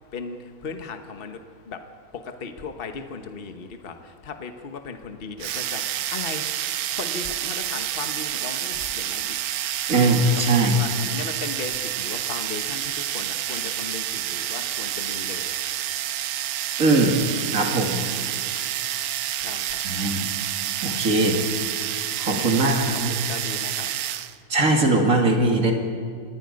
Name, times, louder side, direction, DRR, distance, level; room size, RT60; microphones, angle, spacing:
voice 1, 0.1-6.6 6.9-9.4 10.4-15.6 19.3-19.8 22.2-24.0, left 5 dB, 40° left, 7 dB, 1.3 m, -37 dB
sound 1, 5.4-24.4, right 11 dB, 90° right, 1.2 m, -29 dB
voice 2, 9.9-10.7 16.8-17.2 17.5-18.0 19.8-20.3 20.8-21.4 22.2-23.1 24.5-25.7, right 2 dB, 65° right, 2 dB, 2.9 m, -20 dB
26.0 x 19.0 x 5.3 m, 2.2 s
omnidirectional pair, 1.5 m